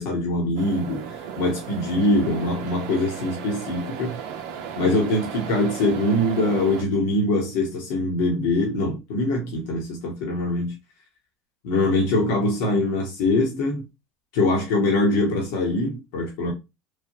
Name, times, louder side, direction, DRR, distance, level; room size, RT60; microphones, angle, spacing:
voice 1, 0.0-4.2 4.8-10.7 11.6-13.8 14.3-16.5, left 2 dB, 70° left, 0.9 m, -23 dB
sound 1, 0.6-6.8, right 7 dB, 70° right, 0.6 m, -36 dB
3.2 x 2.1 x 2.7 m
hypercardioid pair, 90°, 0 cm